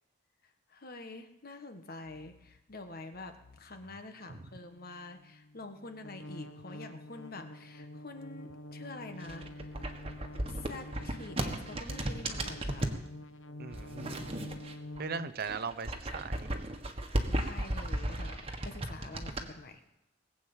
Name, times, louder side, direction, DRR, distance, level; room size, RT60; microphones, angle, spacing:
voice 1, 0.7-9.7 10.5-12.9 17.3-19.8, left 2 dB, 50° left, 7 dB, 1.5 m, -47 dB
sound 1, 2.1-15.3, left 1 dB, 75° left, 0.9 m, -48 dB
sound 2, 9.2-13.0 13.7-15.0 15.3-19.4, right 1 dB, 30° right, 1.5 m, -35 dB
voice 2, 13.6-14.3 15.0-16.7, right 5 dB, 55° right, 12 dB, 0.7 m, -39 dB
20.0 x 8.3 x 7.3 m, 0.90 s
head